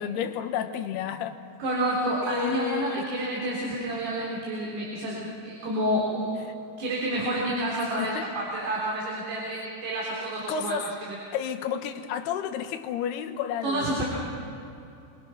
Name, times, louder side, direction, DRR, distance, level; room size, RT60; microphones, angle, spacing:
voice 1, 0.0-1.4 2.2-3.3 6.5-6.6 8.0-8.3 10.5-10.9 11.3-14.0, left 8 dB, 75° left, 5 dB, 2.9 m, -31 dB
voice 2, 1.6-6.5 6.8-10.8 13.6-14.0, right 1 dB, 65° right, -4 dB, 5.7 m, -29 dB
28.0 x 22.0 x 5.8 m, 2.7 s
omnidirectional pair, 5.1 m